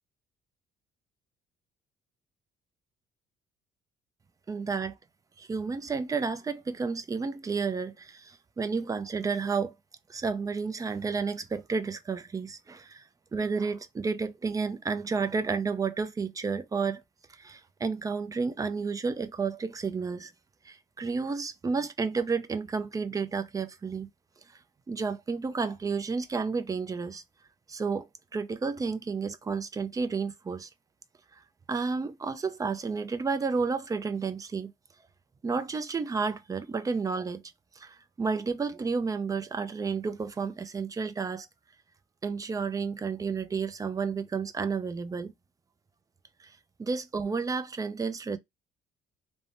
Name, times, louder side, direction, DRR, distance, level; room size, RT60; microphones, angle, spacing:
voice 1, 4.5-5.0 5.4-9.7 10.1-13.0 13.3-17.0 17.3-20.3 20.6-24.1 24.9-27.2 27.7-30.7 31.7-34.7 35.4-37.4 37.8-41.5 42.2-45.3 46.4-46.5 46.8-48.4, right 5 dB, 20° right, 0.4 m, -31 dB
3.2 x 2.1 x 2.5 m
cardioid pair, 110°, 17 cm